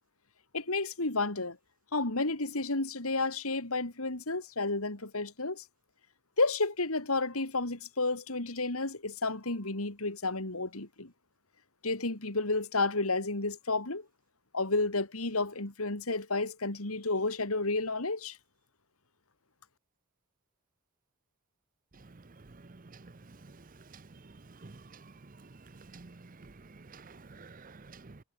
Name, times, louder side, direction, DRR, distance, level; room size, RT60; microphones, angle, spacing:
voice 1, 0.5-1.6 1.9-5.6 6.4-11.1 11.8-14.0 14.5-18.4, left 3 dB, 85° left, 3.2 m, -31 dB
voice 2, 25.9-26.5 26.9-28.2, right 3 dB, 40° right, 0.7 m, -50 dB
head